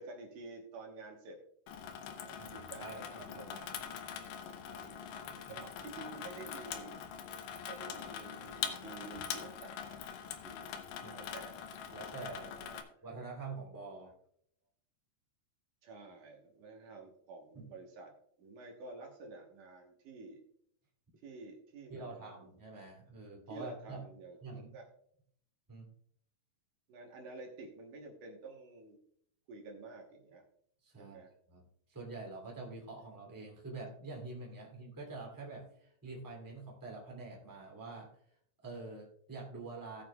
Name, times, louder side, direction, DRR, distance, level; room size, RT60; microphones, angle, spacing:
voice 1, 0.0-1.4 2.1-3.5 4.8-5.1 5.3-7.0 7.6-10.1 10.4-10.7 11.0-11.7 12.6-12.8 15.8-20.4 21.2-22.5 23.5-24.9 26.9-29.0 29.5-30.5 31.0-31.3, right 3 dB, 70° right, 1 dB, 2.7 m, -50 dB
Water tap faucet / Sink (filling or washing), 1.7-12.8, left 8 dB, 80° left, 2.5 m, -43 dB
voice 2, 2.4-3.8 5.5-5.6 11.0-11.2 11.9-12.5 13.0-14.1 17.5-17.7 21.9-24.0 24.4-24.8 25.7-25.9 30.8-31.2 31.5-31.6 31.9-38.1 38.6-40.0, right 3 dB, 5° right, -2 dB, 2.1 m, -46 dB
18.0 x 7.5 x 2.3 m, 0.69 s
omnidirectional pair, 4.0 m